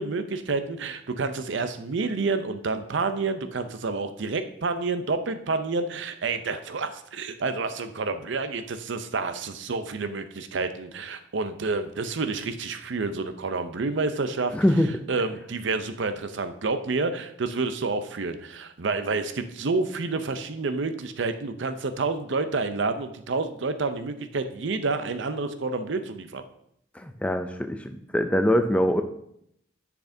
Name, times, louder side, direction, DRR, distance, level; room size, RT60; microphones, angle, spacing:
voice 1, 0.0-14.5 15.1-26.4, right 3 dB, 65° right, 9 dB, 0.5 m, -29 dB
voice 2, 14.5-14.9 26.9-29.0, equal, 5° left, 7 dB, 0.3 m, -23 dB
10.0 x 5.9 x 2.7 m, 0.72 s
head